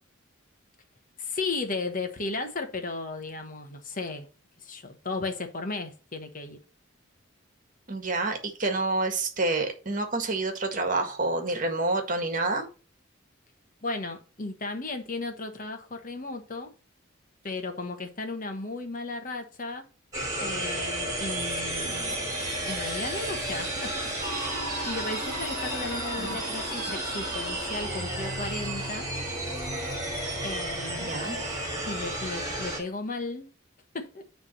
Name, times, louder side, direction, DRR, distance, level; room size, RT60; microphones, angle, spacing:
voice 1, 1.2-4.3 4.6-6.6 13.8-16.7 17.4-19.8 20.4-23.9 24.2-29.1 30.4-31.4 31.8-33.5 33.9-34.2, left 3 dB, 45° left, 1.2 m, -35 dB
voice 2, 7.9-12.7 26.2-26.4 31.0-31.4, right 2 dB, 40° right, 1.7 m, -28 dB
sound 1, 20.1-32.8, right 1 dB, 20° right, 3.4 m, -32 dB
9.7 x 3.5 x 5.6 m
head